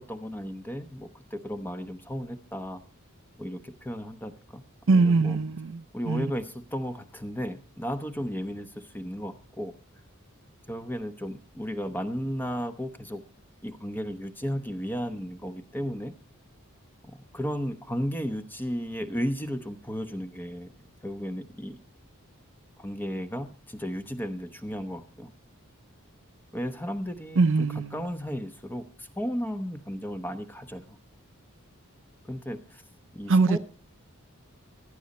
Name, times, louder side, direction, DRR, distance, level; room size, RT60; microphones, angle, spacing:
voice 1, 0.1-2.8 3.4-4.6 4.9-5.4 5.9-9.7 10.7-13.2 13.6-16.1 17.0-20.7 21.0-21.8 22.8-25.3 26.5-27.7 27.9-31.0 32.3-32.8 33.1-33.6, equal, 10° left, 1.0 m, -34 dB
voice 2, 4.9-6.3 27.4-28.0 33.3-33.6, right 3 dB, 60° right, 0.6 m, -22 dB
15.0 x 11.5 x 4.2 m
head